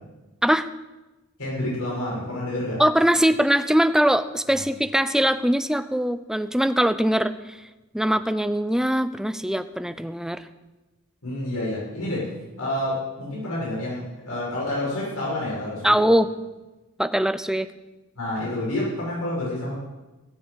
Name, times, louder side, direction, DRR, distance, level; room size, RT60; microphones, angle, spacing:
voice 1, 1.4-2.8 4.5-4.6 11.2-12.3 12.6-15.9 18.2-19.8, left 1 dB, 80° left, -6 dB, 6.9 m, -28 dB
voice 2, 2.8-7.6 7.9-10.4 15.8-16.3 17.0-17.7, equal, 5° right, 11 dB, 0.6 m, -22 dB
17.5 x 7.6 x 8.3 m, 1.1 s
head